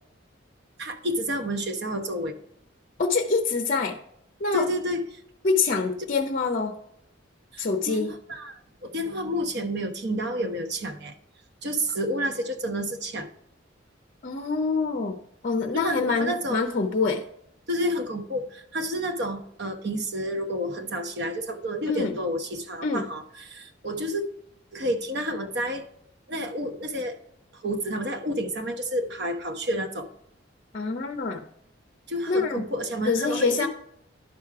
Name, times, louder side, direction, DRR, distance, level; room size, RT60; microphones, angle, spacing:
voice 1, 0.8-2.4 4.5-5.2 7.5-11.1 11.6-13.3 15.7-16.7 17.7-24.2 24.7-25.9 26.3-27.2 27.6-30.1 32.1-33.7, equal, 60° right, 5 dB, 1.0 m, -30 dB
voice 2, 3.0-4.0 4.4-4.7 5.4-6.7 7.6-8.1 14.2-15.2 15.4-17.2 21.9-22.1 22.8-23.1 30.7-31.4 32.3-32.6 33.0-33.7, left 4 dB, 45° left, 6 dB, 0.6 m, -25 dB
11.0 x 5.0 x 4.7 m, 0.72 s
head